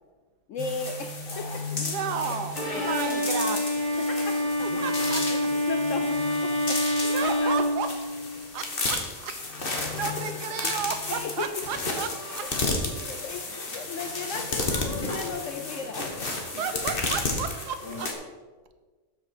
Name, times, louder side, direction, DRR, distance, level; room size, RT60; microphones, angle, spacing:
voice 1, 0.5-1.8 2.7-3.4 4.1-4.4 5.5-7.6 10.6-10.7 11.1-11.5 13.0-16.1, left 4 dB, 65° left, 6 dB, 0.8 m, -36 dB
sound 1, 0.6-18.1, left 3 dB, 35° left, 1.4 m, -32 dB
voice 2, 1.7-3.7 4.6-5.5 6.8-7.9 8.5-9.4 9.7-12.5 16.4-18.1, right 7 dB, 90° right, 9 dB, 1.4 m, -33 dB
Bowed string instrument, 2.5-8.5, left 1 dB, 10° left, 3.2 m, -27 dB
12.5 x 6.1 x 4.3 m, 1.4 s
omnidirectional pair, 1.7 m